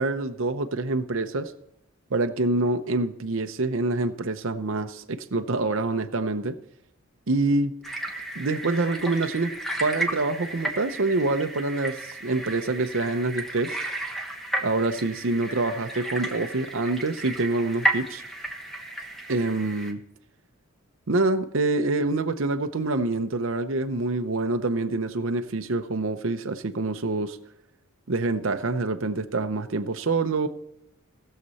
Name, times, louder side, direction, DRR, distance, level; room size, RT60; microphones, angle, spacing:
voice 1, 0.0-1.5 2.1-6.5 7.3-7.7 8.4-9.5 9.8-13.8 14.6-18.2 19.3-20.0 21.1-27.4 28.1-30.5, right 2 dB, 60° right, 7 dB, 0.7 m, -26 dB
sound 1, 7.8-19.9, right 1 dB, ahead, 1.0 m, -33 dB
19.0 x 6.7 x 4.1 m, 0.78 s
head